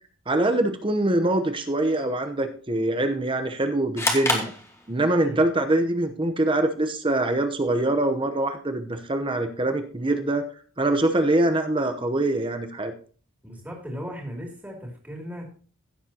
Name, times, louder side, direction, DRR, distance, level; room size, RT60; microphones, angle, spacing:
voice 1, 0.3-4.5 4.9-10.4 10.8-12.9, right 1 dB, 25° right, 7 dB, 0.8 m, -24 dB
sound 1, 4.0-5.4, left 2 dB, 15° left, 1.5 m, -27 dB
voice 2, 13.4-15.5, equal, 10° right, 0 dB, 2.6 m, -37 dB
16.0 x 7.2 x 2.8 m, 0.40 s
head